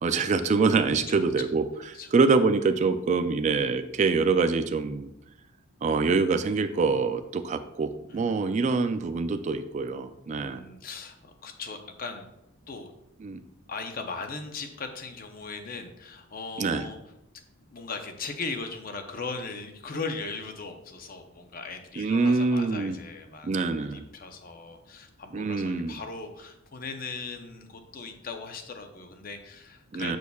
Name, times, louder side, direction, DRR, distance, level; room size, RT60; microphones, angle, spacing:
voice 1, 0.0-1.7 2.1-5.1 5.8-10.6 13.2-13.4 16.6-16.9 22.0-23.0 23.4-24.0 25.3-26.0 29.9-30.2, right 4 dB, 35° right, 9 dB, 0.3 m, -25 dB
voice 2, 8.1-8.5 10.3-12.2 12.7-12.9 13.7-17.0 17.7-30.2, left 4 dB, 45° left, 6 dB, 0.6 m, -38 dB
6.8 x 6.3 x 2.3 m, 0.86 s
head